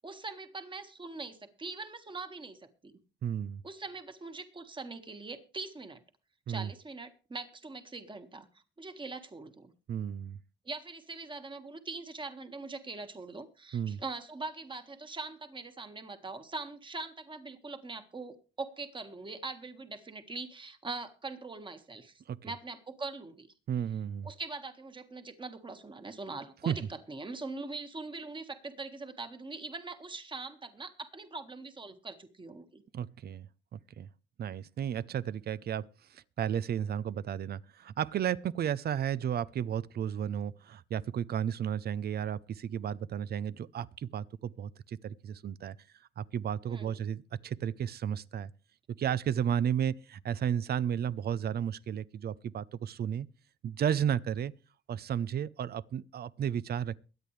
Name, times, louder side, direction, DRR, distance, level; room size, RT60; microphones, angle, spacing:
voice 1, 0.0-3.0 3.6-6.0 6.5-8.5 8.8-9.7 10.6-23.5 24.2-32.8 46.7-47.0, right 3 dB, 25° right, 1.7 m, -42 dB
voice 2, 3.2-3.6 6.5-6.7 9.9-10.4 13.7-14.0 22.3-22.5 23.7-24.3 26.7-26.8 32.9-34.1 34.4-45.8 46.2-48.5 49.0-53.3 53.6-54.5 54.9-57.0, right 9 dB, 55° right, 0.6 m, -33 dB
22.5 x 8.6 x 3.3 m
cardioid pair, 90°, 20 cm